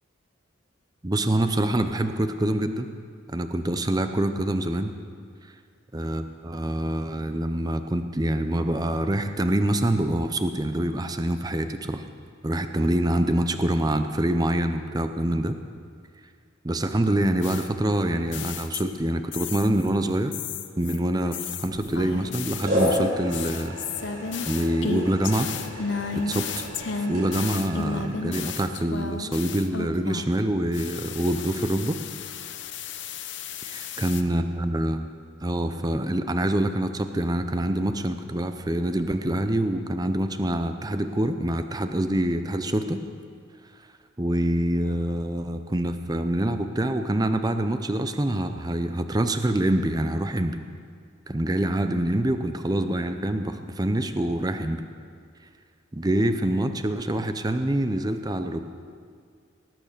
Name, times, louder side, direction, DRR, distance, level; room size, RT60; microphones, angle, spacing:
voice 1, 1.0-2.9 3.3-4.9 5.9-12.0 12.4-15.6 16.6-20.3 20.8-23.8 24.5-25.5 25.7-26.5 27.0-32.0 33.6-35.1 35.4-43.0 44.2-50.6 51.3-54.8 55.9-58.6, right 1 dB, 20° right, 8 dB, 0.6 m, -25 dB
sound 1, 17.4-19.0 19.3-19.9 20.3-30.4 30.7-34.2, left 5 dB, 60° left, 0.8 m, -34 dB
sound 2, 21.6-22.3 22.6-28.6, equal, 45° right, 4.9 m, -32 dB
18.0 x 8.9 x 6.8 m, 2.2 s
head